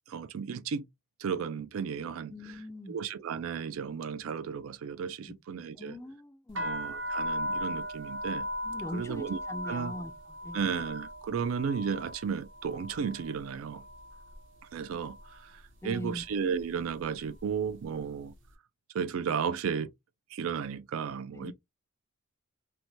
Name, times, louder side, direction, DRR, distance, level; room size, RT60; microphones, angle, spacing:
voice 1, 0.1-0.8 1.2-2.3 2.9-5.9 6.6-8.5 8.9-9.4 9.6-9.9 10.5-13.8 14.7-18.3 18.9-19.9 20.3-21.5, right 6 dB, 75° right, 0.4 m, -34 dB
voice 2, 2.3-3.0 5.3-5.4 5.8-6.7 8.6-10.6 15.8-16.2 21.3-21.5, left 1 dB, 15° left, 0.3 m, -41 dB
sound 1, 6.5-14.4 14.7-15.3 16.0-16.3 16.5-18.0, equal, 60° right, 0.8 m, -38 dB
2.8 x 2.2 x 3.0 m
head